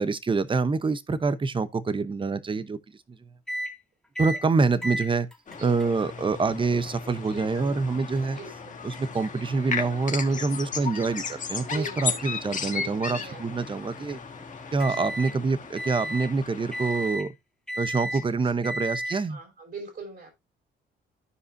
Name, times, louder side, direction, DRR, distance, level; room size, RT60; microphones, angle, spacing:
voice 1, 0.0-2.8 3.2-3.3 4.2-5.3 5.6-8.4 8.8-14.2 14.7-17.3 17.8-19.4, right 4 dB, 25° right, 0.8 m, -26 dB
sound 1, 3.5-3.7 4.2-4.4 4.8-15.4 15.8-16.3 16.7-17.3 17.7-18.2 18.6-19.2, equal, ahead, 2.0 m, -37 dB
sound 2, 5.5-17.2, left 6 dB, 40° left, 1.5 m, -36 dB
voice 2, 5.6-6.0 7.2-7.8 8.2-8.8 10.3-10.7 11.6-12.3 12.7-13.4 14.9-15.1 18.0-18.7 19.3-20.3, right 4 dB, 50° right, 5.5 m, -43 dB
14.0 x 4.9 x 2.6 m
cardioid pair, 90°, 20 cm